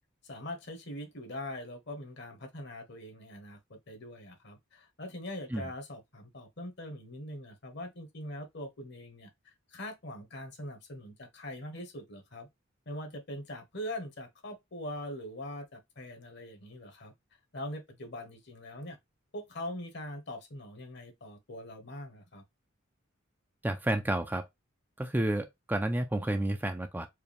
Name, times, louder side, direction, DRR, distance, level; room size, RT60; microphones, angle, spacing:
voice 1, 0.2-9.3 9.7-12.5 12.9-17.1 17.5-19.0 19.3-22.4, left 1 dB, 60° left, 1.3 m, -42 dB
voice 2, 23.6-24.5 25.0-27.1, right 1 dB, 10° right, 0.4 m, -30 dB
4.6 x 2.3 x 3.4 m
head